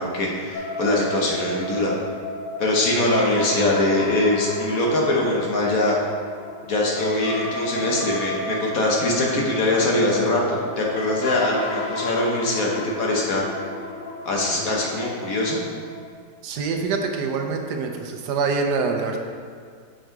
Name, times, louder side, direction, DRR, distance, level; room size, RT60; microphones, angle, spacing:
voice 1, 0.0-1.9 2.6-6.0 6.7-13.5 14.2-15.6, left 1 dB, 55° left, -2 dB, 1.4 m, -22 dB
sound 1, 0.5-16.1, left 1 dB, 85° left, 1.4 m, -33 dB
voice 2, 16.4-19.2, right 4 dB, 75° right, 3 dB, 1.2 m, -25 dB
6.5 x 4.9 x 4.6 m, 2.1 s
omnidirectional pair, 1.9 m